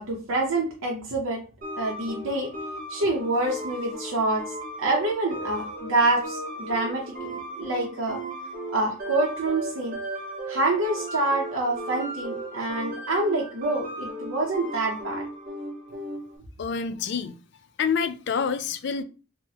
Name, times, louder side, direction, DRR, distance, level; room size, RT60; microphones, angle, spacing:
voice 1, 0.0-1.4 1.8-2.5 2.9-8.2 8.7-10.0 10.5-15.3, right 2 dB, 70° right, 0.7 m, -27 dB
sound 1, 1.6-16.4, right 1 dB, 45° right, 1.0 m, -36 dB
voice 2, 16.6-17.3 17.8-19.0, left 6 dB, 55° left, 0.4 m, -27 dB
3.9 x 2.1 x 2.8 m
head